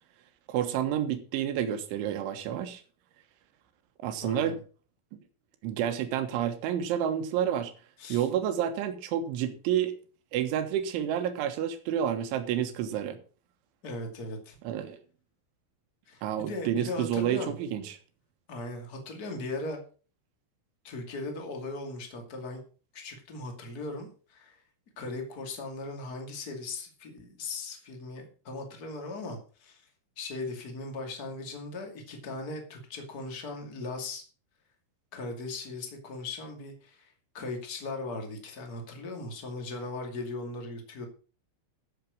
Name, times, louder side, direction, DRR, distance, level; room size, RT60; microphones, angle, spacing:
voice 1, 0.5-2.8 4.0-4.6 5.6-7.7 8.1-9.9 10.3-13.2 14.7-15.0 16.2-18.0, right 10 dB, 75° right, 8 dB, 3.6 m, -29 dB
voice 2, 4.2-4.5 8.0-8.3 13.8-14.6 16.1-17.5 18.5-19.8 20.8-22.6 22.9-24.6 24.9-29.8 30.1-34.2 35.1-41.0, left 2 dB, 35° left, 3 dB, 1.5 m, -38 dB
14.0 x 6.7 x 6.1 m, 0.38 s
omnidirectional pair, 5.8 m